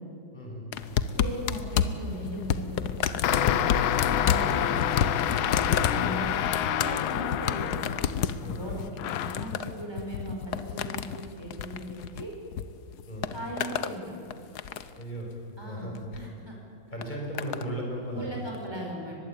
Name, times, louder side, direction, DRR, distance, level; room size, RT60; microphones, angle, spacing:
voice 1, 0.3-0.6 5.6-5.9 8.4-8.8 13.1-13.3 15.0-15.3 15.6-15.9 16.9-18.4, right 1 dB, 20° left, -1 dB, 6.1 m, -36 dB
sound 1, 0.7-12.6 12.9-14.0 14.3-15.0 15.9-16.2 17.0-17.7 18.5-18.6, left 8 dB, 60° left, 1.3 m, -30 dB
voice 2, 1.2-5.0 6.0-6.3 6.6-7.9 8.6-8.8 9.2-12.3 13.3-14.1 15.6-15.9 16.1-16.5 18.1-19.2, right 1 dB, 10° right, -1 dB, 6.2 m, -38 dB
sound 2, 3.2-8.3 9.0-9.5, left 10 dB, 90° left, 1.7 m, -28 dB
23.5 x 20.5 x 8.9 m, 2.8 s
omnidirectional pair, 2.1 m